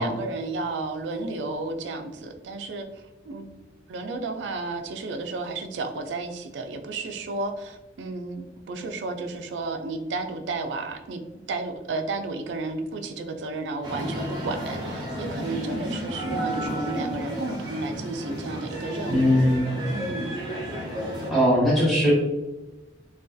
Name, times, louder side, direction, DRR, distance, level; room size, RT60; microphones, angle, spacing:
voice 1, 0.0-3.6 3.9-11.2 11.5-19.6 19.8-20.4, right 3 dB, 80° right, 6 dB, 0.3 m, -32 dB
sound 1, 13.8-21.3, equal, 25° right, 0.6 m, -32 dB
voice 2, 19.1-19.7 21.3-22.1, equal, ahead, -8 dB, 0.9 m, -20 dB
2.5 x 2.3 x 2.2 m, 1.1 s
head